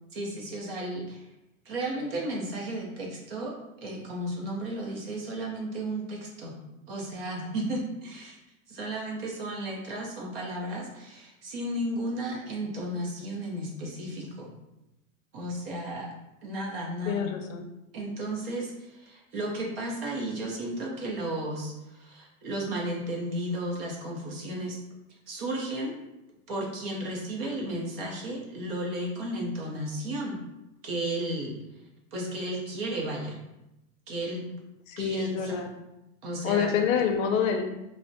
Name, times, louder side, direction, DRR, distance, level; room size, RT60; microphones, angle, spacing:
voice 1, 0.1-1.3 1.7-6.6 6.9-8.4 8.7-14.5 15.3-16.1 16.4-17.4 17.9-24.8 25.3-25.9 26.5-30.4 30.8-31.6 32.1-33.4 34.1-34.5 35.0-35.7 36.2-36.7, right 1 dB, 45° right, -2 dB, 0.5 m, -34 dB
voice 2, 17.1-17.7 34.9-35.7 36.4-37.6, left 7 dB, 70° left, 4 dB, 0.5 m, -27 dB
2.4 x 2.0 x 2.5 m, 0.93 s
supercardioid pair, 170°, 41 cm